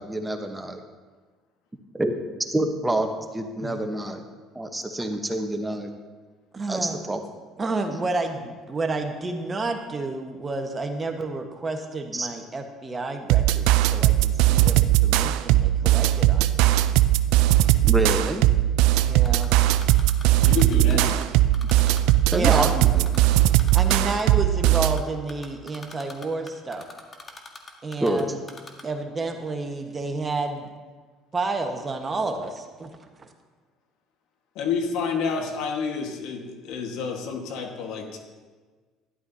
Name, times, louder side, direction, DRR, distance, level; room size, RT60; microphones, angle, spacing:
voice 1, 0.0-0.8 1.9-2.2 2.5-4.2 4.5-5.9 6.7-7.2 12.1-12.3 17.8-18.4 20.8-21.0 22.3-23.1 28.0-28.2, right 1 dB, 15° right, 6 dB, 1.1 m, -27 dB
voice 2, 6.5-7.0 7.6-16.7 19.0-19.5 22.3-22.7 23.7-26.8 27.8-28.4 28.8-30.7 31.3-32.9 33.2-33.3, right 3 dB, 30° right, 5 dB, 1.3 m, -30 dB
sound 1, 13.3-25.0, right 14 dB, 80° right, 0.4 m, -19 dB
Typing, 19.2-21.2 21.5-22.4 22.7-24.3 24.7-25.0 25.3-28.2 28.5-28.8, left 3 dB, 30° left, 1.6 m, -41 dB
voice 3, 20.4-21.2 34.6-38.2, left 5 dB, 75° left, 3 dB, 1.6 m, -29 dB
12.5 x 11.0 x 2.8 m, 1.4 s
supercardioid pair, 80°, 0 cm